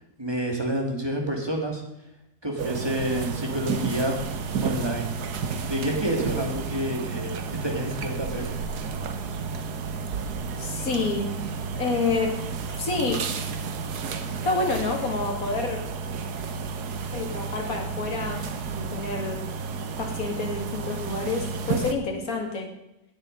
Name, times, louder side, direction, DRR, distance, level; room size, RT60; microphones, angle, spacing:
voice 1, 0.2-1.8 2.4-4.2 4.6-5.1 5.6-7.3 7.6-8.5, right 1 dB, 15° right, 1 dB, 2.1 m, -28 dB
sound 1, 2.6-21.9, right 5 dB, 80° right, 1.5 m, -32 dB
voice 2, 10.6-11.3 11.7-12.3 12.7-13.2 14.4-15.8 17.1-19.4 20.0-22.7, left 3 dB, 60° left, 1 dB, 2.5 m, -28 dB
18.0 x 6.6 x 5.2 m, 0.88 s
omnidirectional pair, 1.7 m